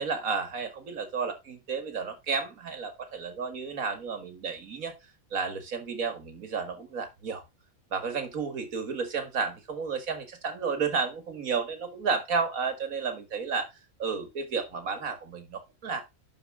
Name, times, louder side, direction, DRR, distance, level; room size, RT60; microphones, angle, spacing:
voice 1, 0.0-4.9 5.3-7.4 7.9-13.7 14.0-16.0, right 5 dB, 80° right, 8 dB, 2.2 m, -32 dB
11.0 x 4.9 x 3.6 m, 0.23 s
omnidirectional pair, 1.4 m